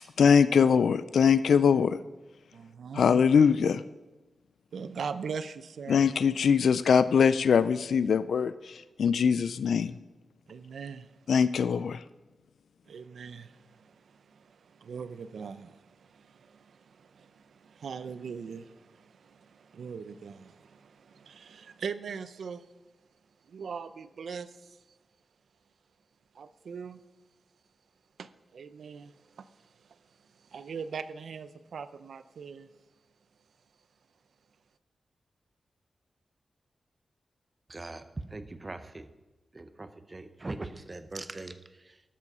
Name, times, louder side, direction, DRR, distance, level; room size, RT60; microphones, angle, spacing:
voice 1, 0.2-2.0 2.9-3.8 5.9-9.9 11.3-12.0, left 6 dB, 85° left, 14 dB, 0.3 m, -22 dB
voice 2, 2.5-3.0 4.7-6.0 10.5-11.3 12.9-22.7 23.5-24.8 26.3-27.0 28.2-30.0 30.3-32.7, right 6 dB, 75° right, 13 dB, 0.6 m, -41 dB
voice 3, 37.7-39.1 39.5-42.0, right 2 dB, 25° right, 10 dB, 0.6 m, -41 dB
12.5 x 7.4 x 5.5 m, 1.1 s
wide cardioid pair, 180°, 0 cm